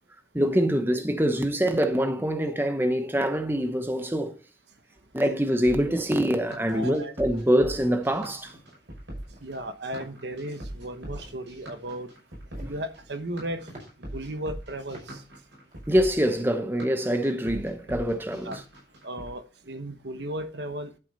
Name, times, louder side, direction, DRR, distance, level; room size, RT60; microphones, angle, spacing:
voice 1, 0.3-4.4 5.1-8.5 12.6-12.7 15.9-18.6, equal, 10° right, 0.9 m, -25 dB
sound 1, 5.7-19.3, right 1 dB, 80° right, 6.0 m, -41 dB
sound 2, 6.4-6.9 7.4-7.6 7.9-8.1 8.5-8.8 9.2-9.5 9.9-10.2 10.4-11.3 12.3-12.8 13.2-13.3 13.6-13.8 14.5-14.6 14.9-15.1 15.4-15.8, right 1 dB, 40° right, 4.3 m, -48 dB
voice 2, 6.7-7.1 9.4-12.1 12.6-13.7 14.0-15.2 18.4-18.6 19.0-21.0, right 1 dB, 65° right, 1.1 m, -35 dB
12.0 x 6.4 x 4.1 m
head